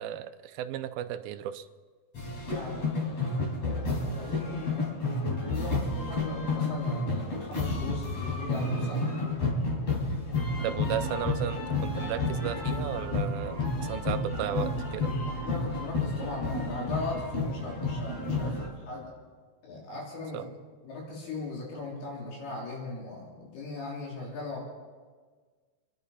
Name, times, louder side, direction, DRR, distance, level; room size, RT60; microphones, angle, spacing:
voice 1, 0.0-1.7 10.6-15.1 20.3-20.5, right 11 dB, 85° right, 9 dB, 2.4 m, -34 dB
sound 1, 2.1-18.7, left 2 dB, 45° left, 4.4 m, -31 dB
voice 2, 2.5-3.2 3.5-9.1 15.4-19.1 19.6-20.5 20.8-24.7, left 3 dB, 85° left, -4 dB, 5.3 m, -39 dB
28.5 x 11.5 x 4.2 m, 1.5 s
omnidirectional pair, 4.4 m